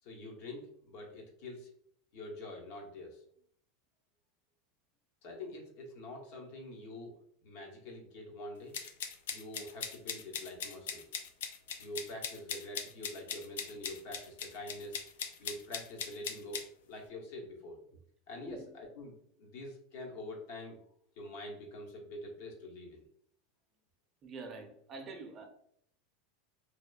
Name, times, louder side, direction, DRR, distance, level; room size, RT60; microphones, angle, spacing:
voice 1, 0.0-1.7 2.1-3.2 5.2-7.1 7.4-8.8 9.3-11.0 11.8-15.0 15.4-17.8 18.3-19.1 19.4-20.8 21.2-23.0, left 1 dB, 65° left, 0 dB, 0.8 m, -45 dB
sound 1, 8.7-16.6, left 7 dB, 85° left, 0.4 m, -40 dB
voice 2, 18.4-18.8 24.2-25.5, right 3 dB, 35° right, 4 dB, 0.5 m, -46 dB
2.8 x 2.1 x 2.3 m, 0.65 s
supercardioid pair, 125°, 0 cm